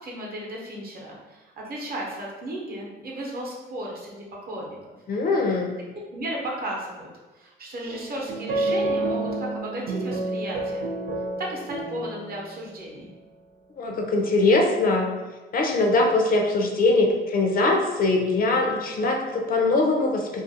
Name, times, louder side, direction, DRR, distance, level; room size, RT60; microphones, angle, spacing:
voice 1, 0.0-4.9 6.1-7.1 7.3-10.9 11.4-13.1, right 1 dB, 50° right, -2 dB, 0.7 m, -34 dB
voice 2, 5.1-5.8 13.8-15.2 15.5-20.4, left 2 dB, 45° left, 1 dB, 0.5 m, -22 dB
sound 1, 7.9-12.7, right 2 dB, 85° right, 0.4 m, -29 dB
2.4 x 2.3 x 2.7 m, 1.2 s
cardioid pair, 90°, 20 cm